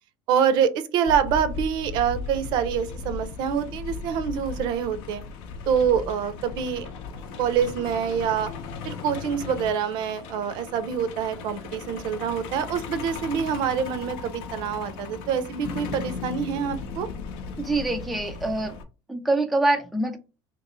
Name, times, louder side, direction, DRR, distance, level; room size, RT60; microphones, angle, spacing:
voice 1, 0.3-5.2 5.7-6.9 7.4-8.5 8.8-17.1, right 8 dB, 50° right, 12 dB, 0.5 m, -26 dB
Truck, 1.1-18.8, left 5 dB, 65° left, 0.7 m, -36 dB
voice 2, 17.6-18.8 19.1-20.2, right 2 dB, ahead, 4 dB, 0.3 m, -25 dB
3.0 x 2.9 x 3.9 m, 0.32 s
cardioid pair, 160°, 9 cm